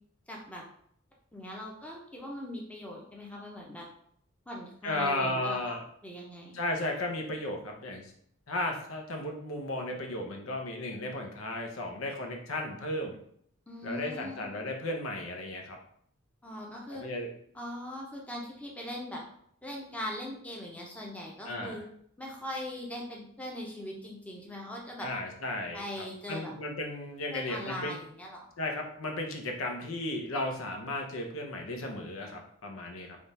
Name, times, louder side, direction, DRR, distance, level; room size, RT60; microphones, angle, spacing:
voice 1, 0.3-0.6 1.3-3.9 4.5-5.8 6.0-6.6 13.7-14.5 16.4-17.0 17.5-19.2 19.6-21.8 22.2-25.1 25.7-26.5 27.3-28.5, left 1 dB, 5° left, -2 dB, 0.6 m, -40 dB
voice 2, 4.8-5.8 6.5-8.1 8.5-13.2 13.8-15.8 16.9-17.3 21.4-21.8 25.0-25.9 26.3-27.9 28.6-33.2, left 1 dB, 90° left, 2 dB, 0.8 m, -34 dB
3.5 x 2.4 x 4.1 m, 0.66 s
head